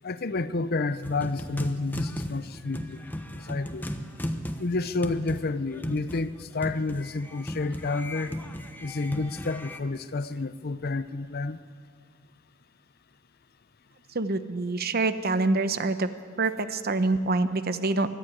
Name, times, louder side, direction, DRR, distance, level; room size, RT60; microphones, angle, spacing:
voice 1, 0.0-3.0 3.3-3.8 4.6-8.4 8.8-11.6, left 3 dB, 50° left, 14 dB, 0.6 m, -30 dB
sound 1, 1.0-9.8, equal, 10° left, 1.0 m, -36 dB
voice 2, 14.1-16.1 16.4-18.1, right 3 dB, 50° right, 11 dB, 0.9 m, -26 dB
24.0 x 11.5 x 9.6 m, 2.1 s
head